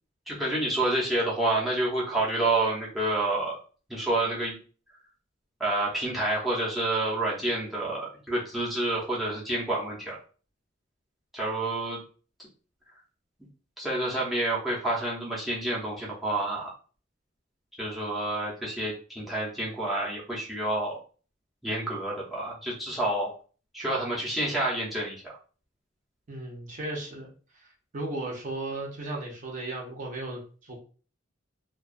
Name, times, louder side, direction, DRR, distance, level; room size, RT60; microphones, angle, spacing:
voice 1, 0.3-3.6 3.9-4.6 5.6-10.2 11.3-12.0 13.8-16.7 17.8-21.0 21.6-23.3 23.7-25.3, right 2 dB, ahead, -7 dB, 0.6 m, -28 dB
voice 2, 26.3-27.3 27.6-30.8, right 2 dB, 40° right, -2 dB, 0.7 m, -36 dB
2.3 x 2.3 x 2.5 m, 0.39 s
head